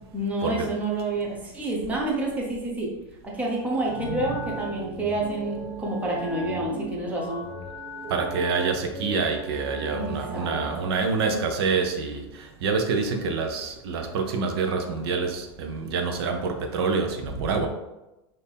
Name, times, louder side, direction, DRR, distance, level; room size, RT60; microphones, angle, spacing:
voice 1, 0.1-2.9 3.2-7.5 9.9-10.6, right 2 dB, 10° right, -2 dB, 0.7 m, -28 dB
sound 1, 3.3-10.7, right 1 dB, 30° right, 1.3 m, -39 dB
voice 2, 4.0-4.5 8.1-12.2 12.6-17.7, right 4 dB, 75° right, 4 dB, 0.7 m, -27 dB
4.2 x 2.7 x 3.4 m, 0.97 s
supercardioid pair, 160°, 13 cm